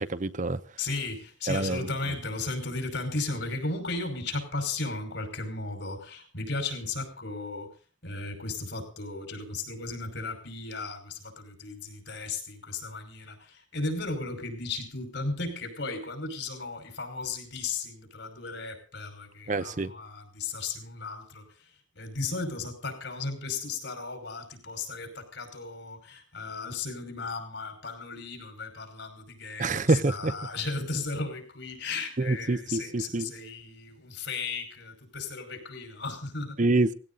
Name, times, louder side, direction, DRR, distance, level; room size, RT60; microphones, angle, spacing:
voice 1, 0.0-0.6 1.5-1.9 19.5-19.9 29.6-30.3 32.2-33.3 36.6-36.9, right 2 dB, 40° right, 0.7 m, -26 dB
voice 2, 0.8-7.7 8.0-21.7 22.0-36.6, left 3 dB, 70° left, 5.4 m, -35 dB
18.0 x 16.5 x 4.0 m
head